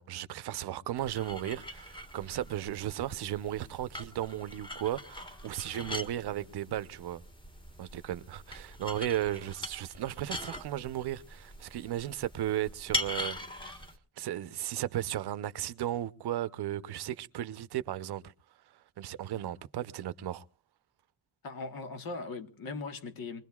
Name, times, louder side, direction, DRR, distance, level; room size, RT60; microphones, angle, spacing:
voice 1, 0.0-7.2 7.8-13.8 14.2-18.2 19.0-20.4, right 12 dB, 70° right, 0.8 m, -35 dB
sound 1, 1.0-13.9, left 1 dB, 10° left, 1.4 m, -42 dB
voice 2, 21.4-23.4, left 3 dB, 60° left, 1.5 m, -39 dB
24.0 x 21.0 x 2.4 m
wide cardioid pair, 160°, 40 cm